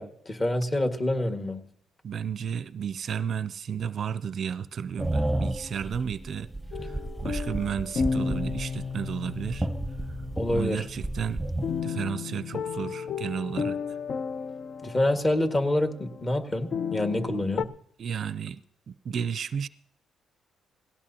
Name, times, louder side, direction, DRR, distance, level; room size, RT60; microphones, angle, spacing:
voice 1, 0.0-1.6 10.4-10.8 14.8-17.7, left 1 dB, 25° left, 1.7 m, -27 dB
voice 2, 2.0-6.5 6.8-9.7 10.5-11.4 11.8-13.8 18.0-19.7, right 7 dB, 55° right, 0.4 m, -33 dB
sound 1, 5.0-11.8, right 1 dB, 5° right, 0.9 m, -32 dB
sound 2, 6.7-17.7, left 6 dB, 55° left, 0.5 m, -34 dB
17.5 x 17.5 x 2.8 m
cardioid pair, 90°, 0 cm